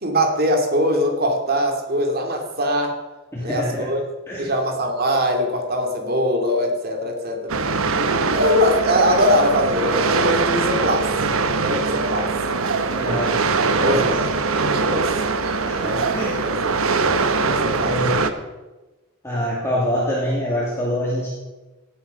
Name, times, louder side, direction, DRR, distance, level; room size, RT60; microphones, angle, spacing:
voice 1, 0.0-3.0 3.4-4.0 4.4-7.5 8.3-11.1 11.6-12.3 13.8-15.1 15.8-16.5 17.3-17.9, equal, 50° right, 3 dB, 2.5 m, -22 dB
voice 2, 3.3-3.9 4.3-4.5 12.9-13.4 13.7-14.0 15.7-16.4 17.8-18.2 19.2-21.3, equal, 15° left, -6 dB, 2.5 m, -25 dB
sound 1, 7.5-18.3, right 4 dB, 85° right, 1.0 m, -22 dB
17.0 x 7.9 x 5.6 m, 1.1 s
head